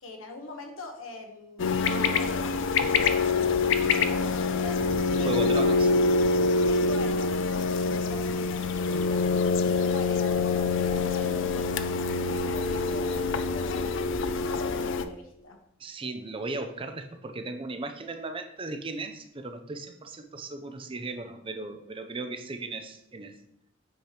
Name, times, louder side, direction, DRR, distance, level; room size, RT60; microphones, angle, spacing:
voice 1, 0.0-3.1 3.8-4.8 5.1-5.7 6.6-9.3 9.7-15.6, left 2 dB, 85° left, 3 dB, 1.2 m, -43 dB
sound 1, 1.6-15.1, left 4 dB, 65° left, 0.4 m, -25 dB
voice 2, 5.2-5.9 15.8-23.3, right 2 dB, 25° right, 7 dB, 0.5 m, -36 dB
8.0 x 3.0 x 5.0 m, 0.78 s
head